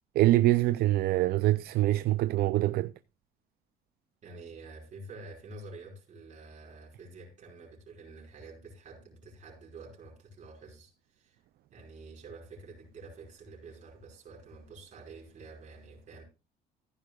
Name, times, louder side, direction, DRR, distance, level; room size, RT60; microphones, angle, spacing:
voice 1, 0.2-2.9, right 16 dB, 65° right, 0.4 m, -24 dB
voice 2, 4.2-11.4 11.7-16.2, right 3 dB, 45° right, 5.0 m, -48 dB
15.0 x 9.9 x 2.3 m
cardioid pair, 110°, 17 cm